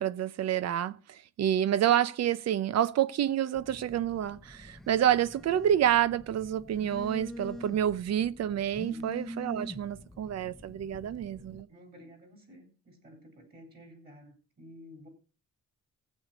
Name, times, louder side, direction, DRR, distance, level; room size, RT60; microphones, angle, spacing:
voice 1, 0.0-11.7, right 10 dB, 50° right, 0.7 m, -28 dB
Telephone, 3.5-11.6, equal, ahead, 0.7 m, -45 dB
voice 2, 8.9-9.2 11.7-15.1, equal, 30° right, 3.9 m, -52 dB
15.0 x 8.4 x 4.0 m
cardioid pair, 150°, 33 cm